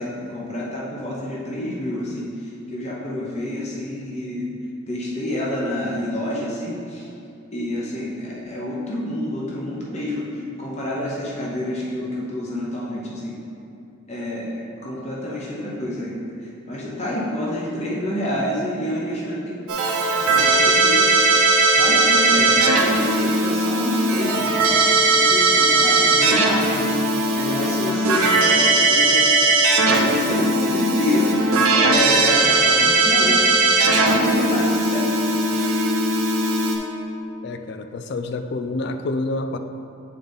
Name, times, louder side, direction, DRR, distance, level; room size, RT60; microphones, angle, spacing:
voice 1, 0.0-4.5 4.9-7.1 7.5-13.4 14.1-19.6 20.1-21.1 21.8-29.4 29.8-31.4 31.7-33.5 33.9-35.1, left 1 dB, 30° left, -5 dB, 0.8 m, -28 dB
Keyboard (musical), 19.7-36.8, right 2 dB, 90° right, 0.8 m, -18 dB
voice 2, 37.4-39.6, left 2 dB, 50° left, 7 dB, 0.3 m, -28 dB
8.5 x 3.9 x 3.5 m, 2.7 s
head